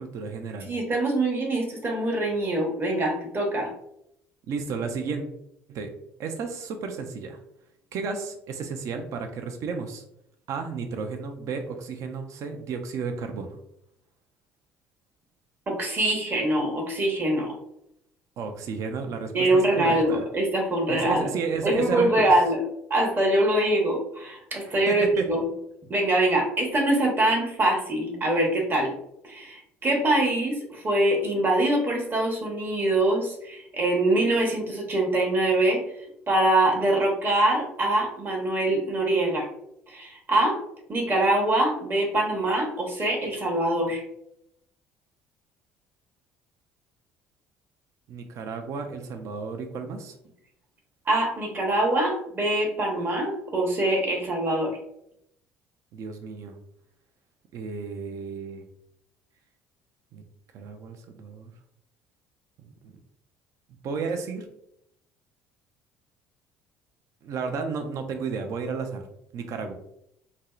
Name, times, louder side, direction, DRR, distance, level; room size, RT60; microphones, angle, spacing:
voice 1, 0.0-0.7 4.5-5.3 5.7-5.9 6.2-7.4 7.9-10.0 10.5-13.6 18.4-20.2 20.9-22.3 24.6-25.3 48.1-50.1 55.9-56.6 57.5-58.6 60.1-60.2 60.5-61.5 62.6-62.9 63.8-64.5 67.2-69.0 69.3-69.7, right 5 dB, 55° right, 6 dB, 0.4 m, -33 dB
voice 2, 0.7-3.7 15.7-17.6 19.3-21.3 21.6-22.6 22.9-25.4 25.9-28.9 29.2-35.8 36.3-39.5 39.9-40.6 40.9-44.0 51.1-54.8, right 1 dB, 35° right, 0 dB, 0.9 m, -24 dB
2.6 x 2.0 x 2.3 m, 0.76 s
hypercardioid pair, 60°, 6 cm